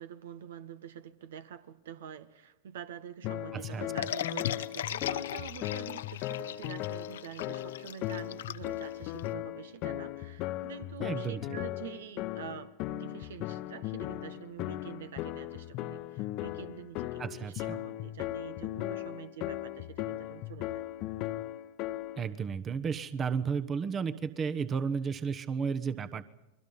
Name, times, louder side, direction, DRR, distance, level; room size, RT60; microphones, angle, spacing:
voice 1, 0.0-20.9, right 9 dB, 70° right, 11 dB, 1.5 m, -46 dB
sound 1, 3.2-22.3, left 15 dB, 50° left, 1.1 m, -37 dB
voice 2, 3.5-3.8 11.0-11.4 17.2-17.8 22.2-26.2, right 6 dB, 30° right, 11 dB, 1.2 m, -33 dB
sound 2, 4.0-9.3, left 11 dB, 75° left, 0.9 m, -37 dB
30.0 x 22.5 x 5.5 m, 0.95 s
hypercardioid pair, 100°, 0 cm